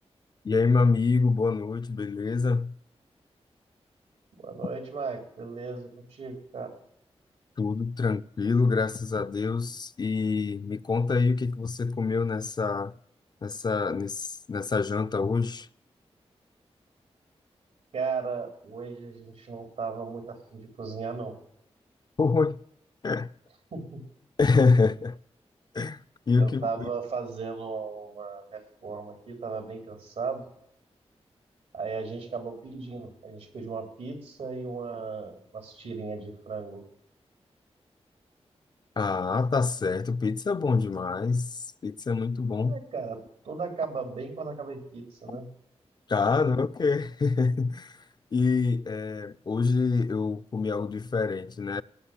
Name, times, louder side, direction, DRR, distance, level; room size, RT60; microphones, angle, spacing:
voice 1, 0.4-2.7 7.6-12.9 13.4-15.7 22.2-22.6 23.0-23.3 24.4-25.2 25.7-26.0 26.3-26.7 39.0-42.8 46.1-48.0 48.3-51.8, left 4 dB, 40° left, 0.4 m, -26 dB
voice 2, 4.4-6.8 17.9-21.4 23.7-24.0 26.4-30.4 31.7-36.8 42.7-43.2 43.4-45.5, right 4 dB, 90° right, 3.2 m, -36 dB
18.5 x 6.6 x 7.2 m
cardioid pair, 70°, 11 cm